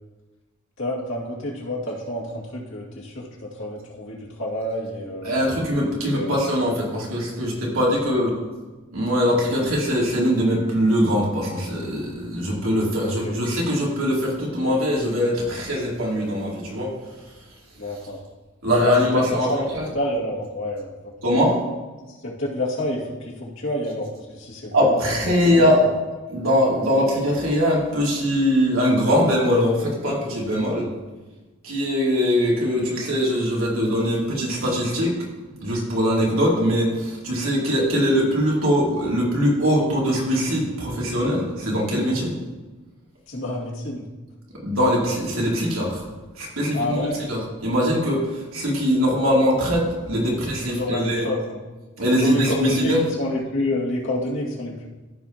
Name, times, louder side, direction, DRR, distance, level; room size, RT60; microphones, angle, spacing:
voice 1, 0.8-5.4 6.1-6.4 8.0-8.3 9.6-9.7 13.0-13.4 17.8-18.2 18.8-19.6 19.9-21.1 22.1-25.0 25.3-25.9 43.3-44.0 46.7-47.2 50.6-51.6 52.2-54.9, left 1 dB, 65° left, -5 dB, 2.3 m, -29 dB
voice 2, 5.2-8.3 8.9-16.9 18.6-19.8 21.2-21.6 24.7-25.9 26.3-30.9 31.6-35.1 35.6-42.3 44.6-46.0 46.4-51.3 52.0-53.0, equal, 85° right, -4 dB, 2.8 m, -22 dB
14.5 x 5.8 x 2.9 m, 1.2 s
head